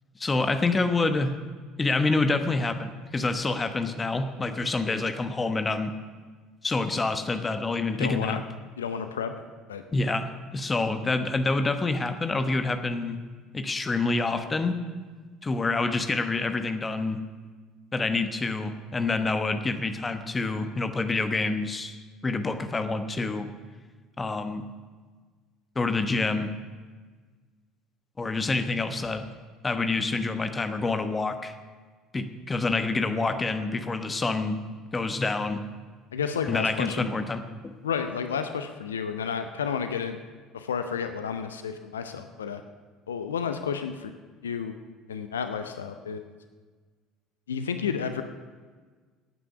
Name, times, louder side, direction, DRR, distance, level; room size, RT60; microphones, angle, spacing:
voice 1, 0.2-1.3 1.8-5.9 6.6-8.4 9.9-13.2 13.5-14.8 15.4-17.2 17.9-23.5 24.2-24.6 25.7-26.5 28.2-29.3 29.6-31.5 32.1-34.6 34.9-35.6 36.5-37.7, left 3 dB, 20° left, 9 dB, 1.1 m, -27 dB
voice 2, 8.0-8.4 8.8-9.3 9.7-9.8 36.1-37.1 37.8-40.2 40.5-42.6 43.1-44.1 44.4-44.8 45.1-46.2 47.5-48.2, left 7 dB, 75° left, 8 dB, 0.6 m, -31 dB
17.0 x 9.2 x 5.8 m, 1.5 s
figure-of-eight pair, 60°, 0 cm